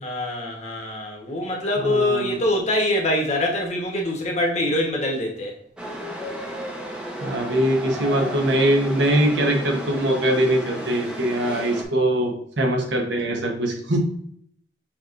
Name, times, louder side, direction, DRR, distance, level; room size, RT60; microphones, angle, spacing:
voice 1, 0.0-5.5, left 1 dB, 40° left, 1.1 m, -24 dB
voice 2, 1.8-2.4 7.2-14.0, right 1 dB, 75° right, 1.0 m, -22 dB
Chatter / Subway metro underground, 5.8-11.8, equal, 5° right, 0.6 m, -33 dB
5.9 x 3.0 x 2.5 m
head